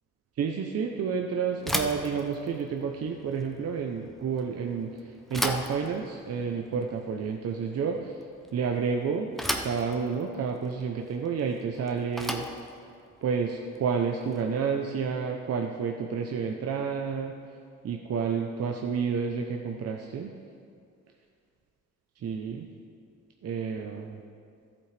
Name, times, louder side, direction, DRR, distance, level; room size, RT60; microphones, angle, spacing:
voice 1, 0.4-8.2 8.5-9.3 9.6-12.5 13.2-17.3 17.8-20.3 22.2-22.7 23.4-24.2, right 6 dB, 55° right, 2 dB, 0.8 m, -30 dB
Bicycle / Thump thud, 1.6-14.7, equal, ahead, 0.7 m, -37 dB
14.0 x 8.5 x 3.4 m, 2.3 s
cardioid pair, 90°, 30 cm